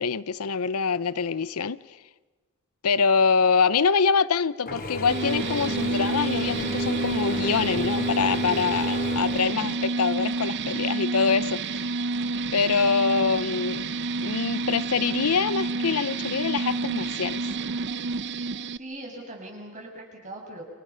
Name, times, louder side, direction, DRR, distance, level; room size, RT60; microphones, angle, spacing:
voice 1, 0.0-1.8 2.8-11.9 12.5-13.8 14.2-17.5, left 5 dB, 85° left, 0.7 m, -25 dB
Mechanisms / Drill, 4.7-10.2, left 1 dB, 45° left, 3.4 m, -34 dB
sound 1, 5.1-18.8, right 3 dB, 55° right, 0.7 m, -29 dB
voice 2, 18.8-20.6, right 1 dB, 35° right, 6.3 m, -41 dB
29.5 x 27.0 x 5.7 m
head